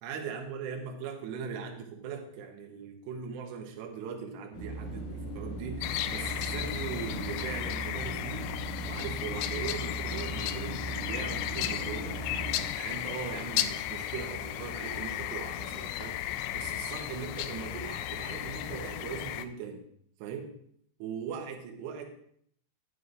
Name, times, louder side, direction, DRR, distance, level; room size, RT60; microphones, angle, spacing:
voice 1, 0.0-8.6 8.9-19.8 20.2-20.5 21.0-22.0, right 6 dB, 75° right, 2 dB, 3.1 m, -40 dB
sound 1, 4.5-12.7, right 2 dB, 50° left, 2.9 m, -38 dB
sound 2, 5.8-19.5, left 13 dB, 85° left, 2.8 m, -35 dB
Crowd, 11.0-19.0, right 1 dB, 40° right, 2.5 m, -55 dB
11.0 x 9.6 x 2.5 m, 0.66 s
omnidirectional pair, 5.2 m